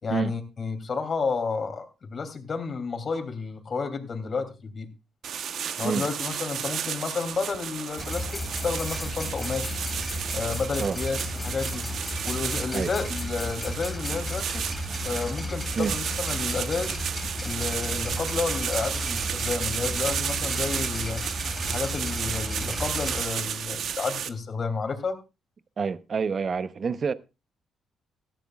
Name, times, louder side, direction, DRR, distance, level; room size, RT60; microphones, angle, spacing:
voice 1, 0.0-4.9 5.8-9.8 10.3-11.8 12.2-14.6 15.0-17.0 17.4-21.2 21.7-25.2, left 4 dB, 45° left, 2.8 m, -31 dB
sound 1, 5.2-24.3, right 8 dB, 65° right, 1.0 m, -33 dB
sound 2, 8.0-23.2, left 1 dB, 5° left, 4.2 m, -33 dB
voice 2, 25.8-27.1, right 5 dB, 45° right, 0.9 m, -27 dB
18.0 x 13.5 x 2.4 m
cardioid pair, 90°, 0 cm